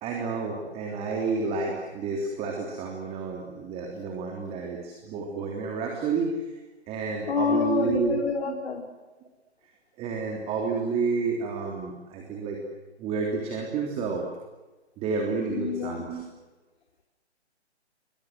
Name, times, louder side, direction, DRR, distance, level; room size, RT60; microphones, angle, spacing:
voice 1, 0.0-6.4 6.9-8.1 8.5-8.6 10.0-12.6 13.0-14.2 15.0-16.2, right 4 dB, 20° right, 1 dB, 3.4 m, -30 dB
voice 2, 7.3-8.8 15.5-16.0, left 5 dB, 60° left, 2 dB, 4.1 m, -27 dB
29.5 x 23.0 x 7.7 m, 1.1 s
figure-of-eight pair, 140°, 34 cm